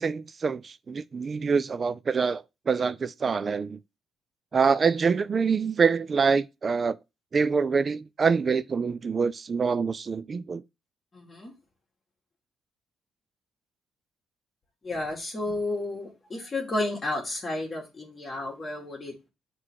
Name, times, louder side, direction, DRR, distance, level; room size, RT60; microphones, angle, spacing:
voice 1, 0.0-3.8 4.5-7.0 7.3-10.6, right 5 dB, 35° right, 0.3 m, -25 dB
voice 2, 11.1-11.5 14.8-19.3, left 2 dB, 30° left, 1.8 m, -32 dB
7.4 x 3.2 x 6.2 m
cardioid pair, 110°, 0 cm